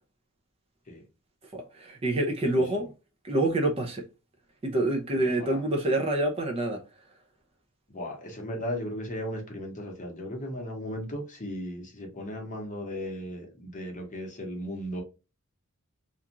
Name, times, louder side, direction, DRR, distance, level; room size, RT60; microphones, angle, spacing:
voice 1, 1.5-2.9 3.2-4.0 4.6-6.8, right 1 dB, 25° right, 0.5 m, -27 dB
voice 2, 7.9-15.0, equal, 35° left, 0.8 m, -36 dB
2.5 x 2.3 x 2.8 m
head